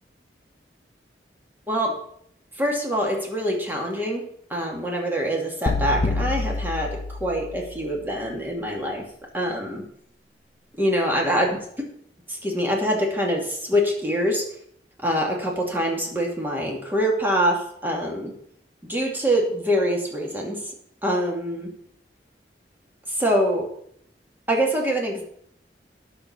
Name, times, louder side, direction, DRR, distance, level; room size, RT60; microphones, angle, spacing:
voice 1, 2.6-4.2 4.5-9.0 9.3-9.8 10.8-11.6 12.3-14.5 15.0-18.3 18.8-20.6 21.0-21.7 23.1-23.7 24.5-25.2, equal, 10° right, -1 dB, 2.5 m, -24 dB
sound 1, 5.7-7.9, left 2 dB, 40° left, 0.9 m, -27 dB
11.0 x 6.5 x 7.1 m, 0.67 s
head